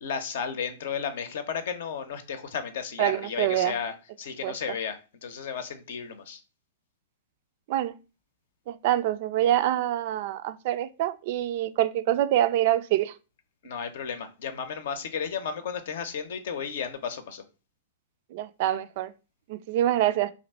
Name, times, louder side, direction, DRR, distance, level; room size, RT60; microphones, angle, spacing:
voice 1, 0.0-6.4 13.6-17.4, left 6 dB, 60° left, 0.7 m, -33 dB
voice 2, 3.0-3.7 4.4-4.6 7.7-8.0 8.7-13.1 18.3-19.1 19.5-20.3, right 13 dB, 50° right, 0.3 m, -25 dB
3.0 x 2.6 x 4.2 m
figure-of-eight pair, 105°, 0 cm